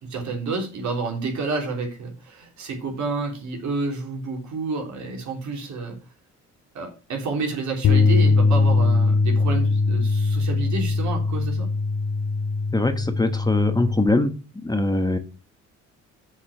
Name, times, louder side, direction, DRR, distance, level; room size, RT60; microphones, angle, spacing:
voice 1, 0.0-6.0 6.8-11.7, right 3 dB, 70° right, 2 dB, 3.5 m, -29 dB
Bass guitar, 7.8-14.1, left 3 dB, 55° left, 0.9 m, -21 dB
voice 2, 12.7-14.3 14.6-15.2, left 2 dB, 15° left, 7 dB, 1.3 m, -22 dB
7.2 x 5.6 x 6.6 m, 0.32 s
cardioid pair, 90°, 30 cm